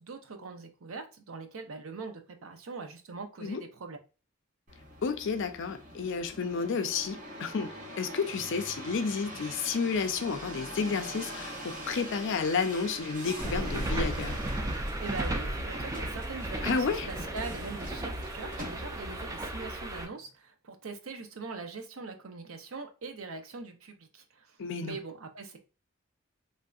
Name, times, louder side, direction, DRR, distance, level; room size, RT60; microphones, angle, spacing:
voice 1, 0.0-4.0 15.0-25.6, right 4 dB, 70° right, 0.6 m, -42 dB
sound 1, 4.7-19.2 19.8-20.3, equal, 40° right, 0.8 m, -44 dB
voice 2, 5.0-14.4 16.6-17.1 24.6-25.0, left 5 dB, 60° left, 0.4 m, -31 dB
sound 2, 13.4-20.1, right 1 dB, 15° right, 0.4 m, -34 dB
3.2 x 2.7 x 2.3 m
head